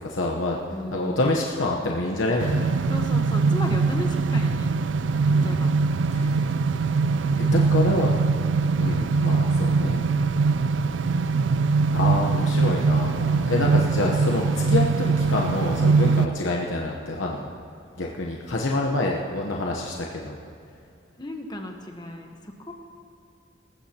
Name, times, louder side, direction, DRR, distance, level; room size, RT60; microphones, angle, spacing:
voice 1, 0.0-0.6 0.9-2.9 4.0-4.1 5.4-5.6 6.1-6.5 7.5-8.2 8.7-10.0 11.9-17.5 18.0-20.4, left 2 dB, 80° left, -1 dB, 1.0 m, -27 dB
voice 2, 0.7-1.4 2.9-4.7 5.3-5.7 7.3-7.7 8.5-8.8 21.2-22.7, left 1 dB, 20° left, 3 dB, 1.1 m, -35 dB
sound 1, 2.4-16.3, right 4 dB, 75° right, 0.4 m, -22 dB
19.5 x 15.0 x 2.9 m, 2.4 s
head